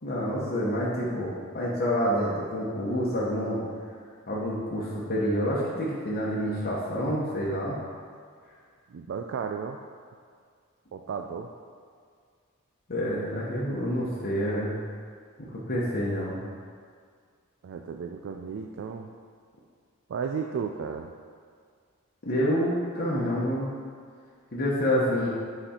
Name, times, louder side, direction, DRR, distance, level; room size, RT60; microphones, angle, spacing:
voice 1, 0.0-3.6 4.3-7.8 12.9-14.8 15.4-16.4 22.2-23.7 24.5-25.3, equal, 45° left, -7 dB, 1.0 m, -28 dB
voice 2, 8.9-9.8 10.9-11.5 17.6-19.1 20.1-21.1, right 6 dB, 55° right, 3 dB, 0.3 m, -34 dB
7.8 x 4.2 x 4.3 m, 2.1 s
head